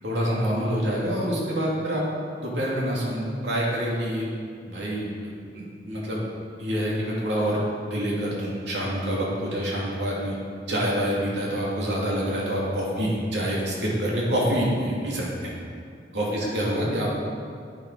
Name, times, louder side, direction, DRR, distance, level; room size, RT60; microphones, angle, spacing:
voice 1, 0.0-2.0 2.4-4.2 4.7-6.2 6.6-10.3 10.7-15.5 16.1-17.1, equal, 80° right, -5 dB, 2.8 m, -26 dB
10.0 x 8.9 x 5.0 m, 2.2 s
head